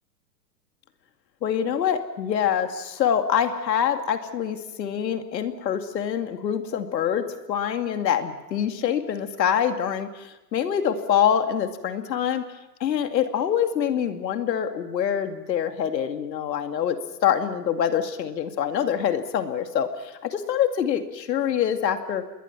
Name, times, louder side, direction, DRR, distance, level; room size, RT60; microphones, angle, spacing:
voice 1, 1.4-12.4 12.8-22.2, left 9 dB, 75° left, 7 dB, 2.4 m, -25 dB
28.0 x 21.5 x 6.0 m, 0.99 s
hypercardioid pair, 140°, 50 cm